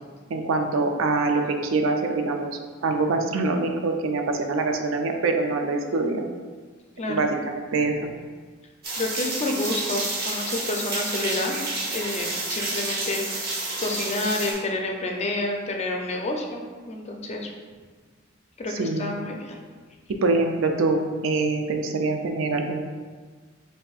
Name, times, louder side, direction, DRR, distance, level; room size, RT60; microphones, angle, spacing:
voice 1, 0.3-6.2 7.1-8.1 18.7-19.1 20.1-22.8, right 3 dB, 70° right, 4 dB, 0.4 m, -24 dB
sound 1, 8.8-14.5, right 2 dB, 50° right, 1.0 m, -30 dB
voice 2, 9.0-11.6 11.9-16.6 16.9-17.5 18.6-19.6, left 2 dB, 35° left, 2 dB, 0.5 m, -29 dB
6.2 x 2.6 x 2.4 m, 1.5 s
head